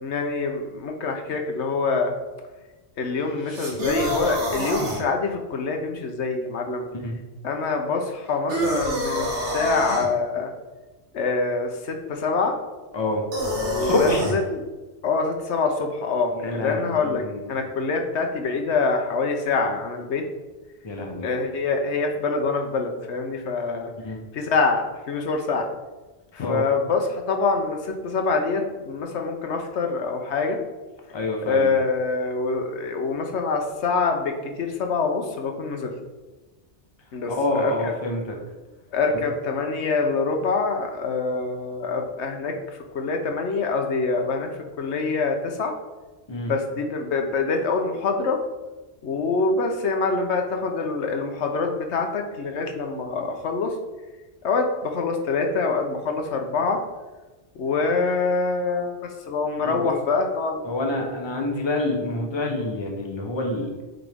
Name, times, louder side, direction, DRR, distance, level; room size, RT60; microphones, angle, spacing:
voice 1, 0.0-2.1 3.0-6.9 7.4-10.5 11.1-12.5 13.6-14.6 15.0-17.2 17.5-20.2 21.2-23.9 24.3-25.7 26.3-30.6 31.5-35.9 37.1-37.9 38.9-42.5 42.9-44.5 44.8-45.7 46.4-48.4 49.0-53.7 54.4-56.8 57.6-58.9 59.3-60.6, left 4 dB, 80° left, 4 dB, 1.0 m, -25 dB
sound 1, 3.5-5.0 8.5-10.1 13.3-14.4, equal, 80° right, 1.5 m, -26 dB
voice 2, 12.9-13.2 13.8-14.2 16.4-17.6 20.8-21.3 24.0-24.2 26.4-26.6 31.1-31.7 37.3-38.4 39.1-39.2 46.3-46.5 59.6-59.9 60.6-63.8, left 2 dB, 25° left, 1 dB, 0.9 m, -27 dB
7.7 x 3.5 x 3.4 m, 1.2 s
omnidirectional pair, 1.1 m